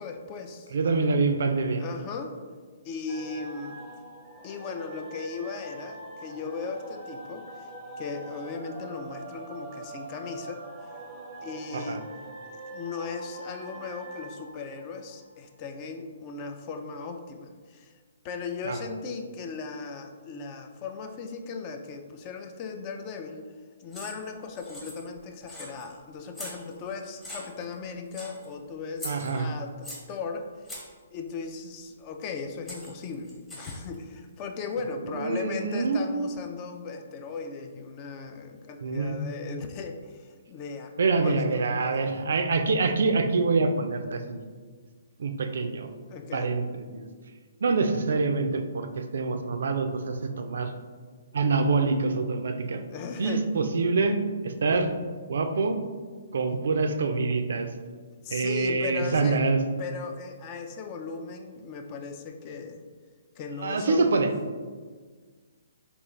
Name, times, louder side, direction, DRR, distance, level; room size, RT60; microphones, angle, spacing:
voice 1, 0.0-0.8 1.8-2.3 2.8-3.8 4.4-7.7 8.0-10.6 11.4-12.0 12.4-17.9 18.2-23.5 23.8-42.1 46.1-46.5 52.9-53.4 58.2-59.4 59.8-62.8 63.4-64.3, left 5 dB, 30° left, 5 dB, 0.3 m, -37 dB
voice 2, 0.7-1.8 11.7-12.0 18.6-18.9 29.0-29.5 35.1-36.2 38.8-39.2 41.0-44.4 45.2-45.9 46.3-47.1 47.6-50.7 51.3-52.8 53.2-54.9 55.3-55.8 56.3-57.7 58.3-59.6 63.6-64.3, right 3 dB, 70° right, 7 dB, 0.3 m, -26 dB
sound 1, 3.1-15.7, right 2 dB, 20° right, 0.5 m, -43 dB
sound 2, 23.9-24.3 24.6-25.2 25.5-25.9 26.3-26.9 27.2-27.7 28.1-28.5 29.0-30.1 30.7-31.0 32.2-32.3 32.7-33.9, left 1 dB, 10° left, 0.8 m, -41 dB
3.5 x 2.4 x 3.0 m, 1.5 s
hypercardioid pair, 140°, 0 cm